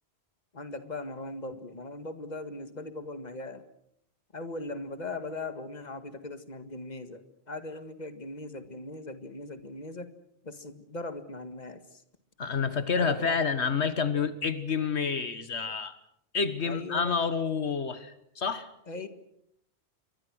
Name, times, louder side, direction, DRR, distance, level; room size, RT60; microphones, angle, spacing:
voice 1, 0.5-3.6 4.3-7.2 7.5-10.1 10.4-12.0 12.9-13.4 16.6-17.1 18.9-19.1, left 2 dB, 40° left, 9 dB, 1.9 m, -39 dB
voice 2, 12.4-16.0 16.3-18.7, left 5 dB, 80° left, 11 dB, 1.6 m, -29 dB
28.5 x 24.5 x 6.3 m, 0.74 s
omnidirectional pair, 1.1 m